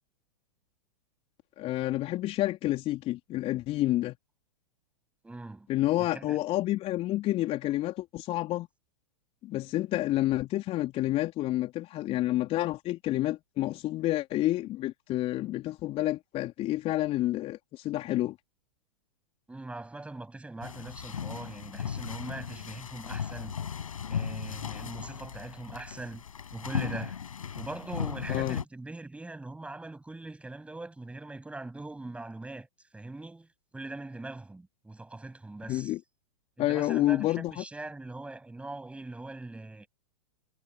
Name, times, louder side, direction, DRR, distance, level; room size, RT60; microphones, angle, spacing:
voice 1, 1.6-4.2 5.7-8.7 9.4-18.4 28.3-28.6 35.7-36.0 36.6-37.6, left 15 dB, 35° left, 3.6 m, -29 dB
voice 2, 5.2-5.7 6.0-6.4 19.5-23.6 24.1-26.2 26.5-27.2 27.5-32.7 32.9-33.5 33.7-35.9 36.6-39.9, right 2 dB, 5° right, 7.7 m, -41 dB
sound 1, 20.6-28.6, left 7 dB, 75° left, 7.4 m, -36 dB
hypercardioid pair, 105°, 18 cm